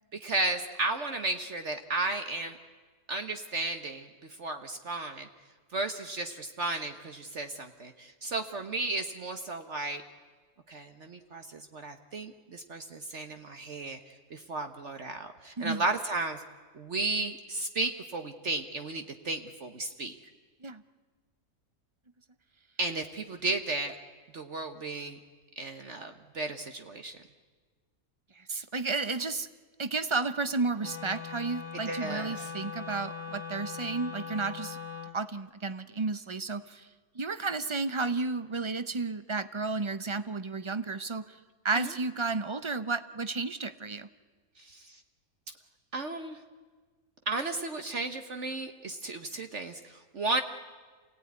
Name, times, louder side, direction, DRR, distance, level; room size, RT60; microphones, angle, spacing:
voice 1, 0.2-2.6 3.1-4.1 4.4-5.3 5.7-10.0 10.7-14.0 14.3-16.4 16.7-20.1 22.8-23.9 24.3-25.2 25.6-27.2 31.9-32.5 41.7-41.9 44.6-45.0 45.9-46.4 47.3-50.4, right 2 dB, 50° right, 6 dB, 1.3 m, -34 dB
voice 2, 28.5-29.5 29.8-34.8 35.1-36.8 37.1-41.2 41.6-44.1, right 3 dB, 30° right, 12 dB, 0.5 m, -32 dB
Wind instrument woodwind instrument, 30.8-35.2, left 5 dB, 65° left, 2.0 m, -40 dB
28.0 x 17.0 x 9.5 m, 1.4 s
omnidirectional pair, 1.6 m